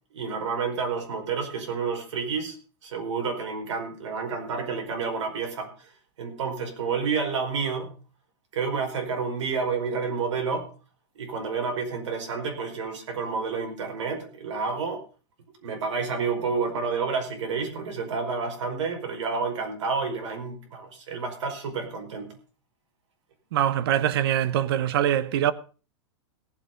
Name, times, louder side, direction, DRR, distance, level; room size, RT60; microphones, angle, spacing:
voice 1, 0.1-2.6 2.8-5.9 6.2-7.9 8.5-10.7 11.1-15.0 15.6-22.3, right 5 dB, 80° right, 4.8 m, -29 dB
voice 2, 23.5-25.5, right 10 dB, 55° right, 1.0 m, -23 dB
18.0 x 7.8 x 5.2 m
supercardioid pair, 165°, 15 cm